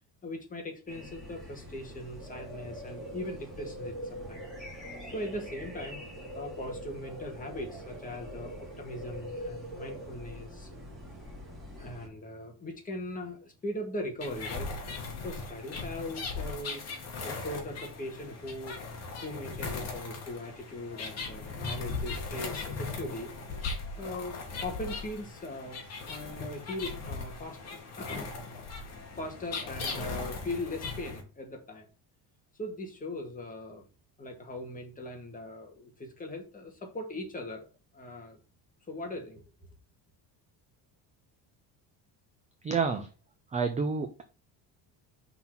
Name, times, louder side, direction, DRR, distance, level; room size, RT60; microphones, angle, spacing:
voice 1, 0.2-4.5 5.1-6.0 6.3-10.7 11.8-14.7 15.2-16.9 17.2-18.8 19.2-23.3 24.0-25.8 26.1-28.3 29.2-31.9 32.5-33.9 34.2-37.7 37.9-38.4 38.9-39.4, left 1 dB, 20° left, 2 dB, 1.6 m, -40 dB
sound 1, 0.9-12.1, equal, ahead, 2.9 m, -43 dB
sound 2, 14.2-31.2, left 4 dB, 35° left, 1.7 m, -38 dB
voice 2, 42.6-43.1 43.5-44.2, right 5 dB, 15° right, 6 dB, 0.5 m, -29 dB
5.7 x 4.0 x 5.8 m, 0.33 s
cardioid pair, 165°, 44 cm